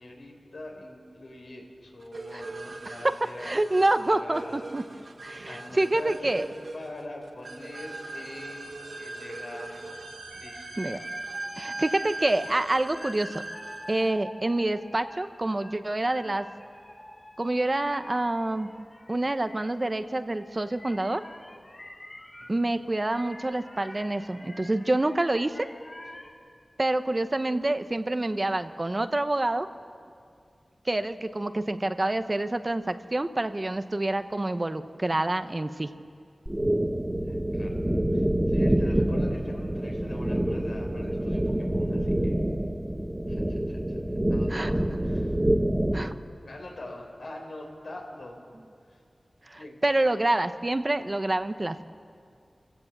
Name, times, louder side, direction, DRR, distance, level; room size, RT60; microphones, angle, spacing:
voice 1, 0.0-5.1 5.5-10.1 10.3-10.7 11.7-11.8 22.4-22.7 37.2-37.8 38.1-42.3 43.3-44.0 44.3-45.4 46.4-48.4 48.8-49.0 49.5-49.8, left 1 dB, 80° left, 0 dB, 4.4 m, -44 dB
sound 1, 2.1-14.1, right 2 dB, 70° right, 1.2 m, -40 dB
voice 2, 3.4-4.8 5.2-6.5 10.8-11.0 11.6-13.4 13.9-16.5 17.4-18.7 19.1-21.2 22.5-25.7 26.8-29.7 30.8-35.9 44.5-44.7 45.9-46.1 49.5-51.8, right 2 dB, 35° right, 10 dB, 0.9 m, -27 dB
sound 2, 7.7-22.5 23.1-26.3, left 1 dB, 35° left, 3.2 m, -48 dB
sound 3, 36.5-46.1, right 1 dB, 20° right, 1.2 m, -26 dB
27.0 x 16.5 x 7.4 m, 2.3 s
wide cardioid pair, 60°, 0 cm